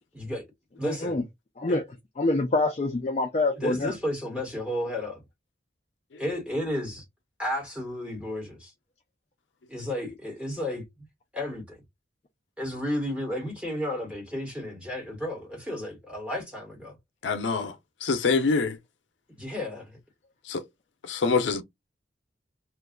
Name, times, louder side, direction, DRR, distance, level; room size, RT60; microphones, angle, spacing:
voice 1, 0.1-0.5 0.8-1.2 1.7-1.8 3.6-5.2 6.2-7.0 7.4-8.7 9.7-10.8 11.3-11.8 12.6-17.0 19.4-20.0, left 1 dB, 5° right, 1.1 m, -32 dB
voice 2, 0.8-1.2 1.6-1.8 2.2-3.9, left 2 dB, 35° left, 0.4 m, -26 dB
voice 3, 17.2-17.7 18.0-18.8 20.5-20.6 21.0-21.6, left 4 dB, 85° left, 0.5 m, -25 dB
2.5 x 2.2 x 3.7 m
head